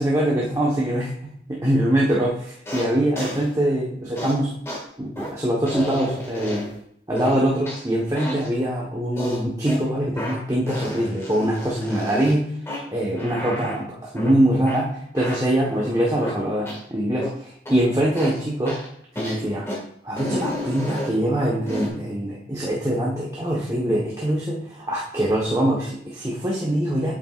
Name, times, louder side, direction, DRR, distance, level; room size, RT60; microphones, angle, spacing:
voice 1, 0.0-4.6 5.0-6.7 7.1-12.6 12.9-18.8 19.1-19.7 20.0-27.1, right 1 dB, 20° right, -5 dB, 1.1 m, -23 dB
sound 1, 2.6-2.9 3.1-3.4 4.2-4.3 4.6-4.8 5.1-5.3 5.7-6.8 7.2-7.8 8.1-8.5 9.1-9.8 10.2-10.4 10.7-12.3 12.7-12.8 13.2-13.8 14.1-14.3 14.6-14.8 15.1-16.4 16.6-16.8 17.2-17.3 17.6-17.8 18.1-18.4 18.6-18.9 19.1-19.4 19.6-19.8 20.2-21.1 21.6-21.9, equal, 15° left, 1.8 m, -31 dB
8.5 x 7.8 x 2.4 m, 0.68 s
head